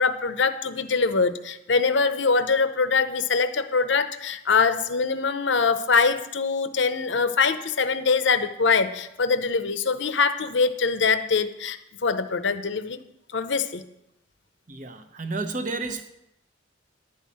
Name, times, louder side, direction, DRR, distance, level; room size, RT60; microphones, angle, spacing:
voice 1, 0.0-13.0 13.3-13.8, left 4 dB, 70° left, 11 dB, 0.7 m, -23 dB
voice 2, 14.7-16.1, right 3 dB, 40° right, 7 dB, 0.9 m, -31 dB
11.0 x 5.6 x 8.6 m, 0.85 s
head